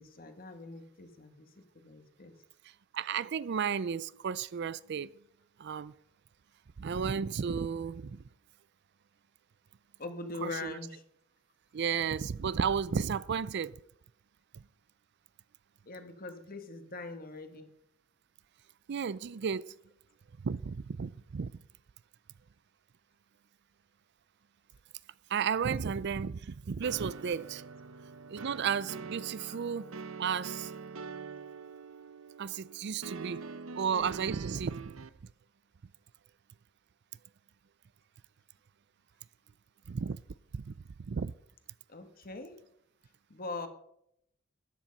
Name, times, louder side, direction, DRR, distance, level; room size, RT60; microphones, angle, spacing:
voice 1, 0.0-2.4 10.0-11.0 15.9-17.7 29.5-29.6 41.9-42.6 43.3-43.7, left 3 dB, 45° left, 1.6 m, -42 dB
voice 2, 2.9-5.1 5.6-5.9 6.8-8.2 10.4-10.7 11.7-13.8 18.9-19.7 20.4-21.5 25.3-27.6 28.3-29.9 30.2-30.7 32.4-33.4 33.8-34.9 39.9-40.2 40.5-40.7 41.1-41.3, right 6 dB, 55° right, 0.4 m, -33 dB
sound 1, 26.8-35.1, right 4 dB, 80° right, 0.8 m, -44 dB
13.5 x 10.5 x 5.4 m
head